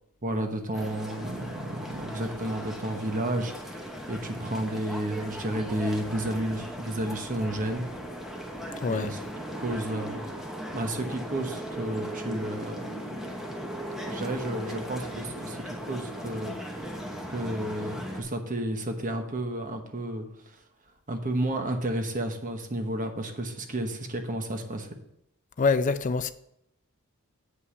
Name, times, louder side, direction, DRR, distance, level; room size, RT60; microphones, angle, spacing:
voice 1, 0.2-7.8 8.9-9.2 9.6-13.2 14.1-17.0 17.3-20.6 21.1-25.0, right 1 dB, 35° right, 1.1 m, -32 dB
sound 1, 0.7-18.2, equal, ahead, 1.0 m, -38 dB
voice 2, 8.8-9.1 25.6-26.3, left 4 dB, 35° left, 0.4 m, -25 dB
8.3 x 5.5 x 5.6 m
head